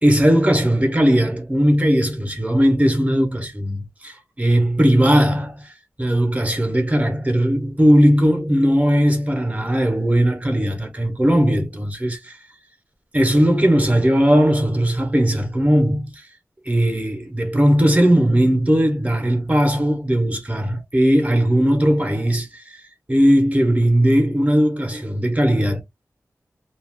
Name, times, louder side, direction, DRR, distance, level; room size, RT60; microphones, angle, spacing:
voice 1, 0.0-5.6 6.0-12.3 13.1-16.1 16.7-22.6 23.1-25.8, equal, 25° right, 1.2 m, -18 dB
2.6 x 2.2 x 3.6 m
wide cardioid pair, 60°, 6 cm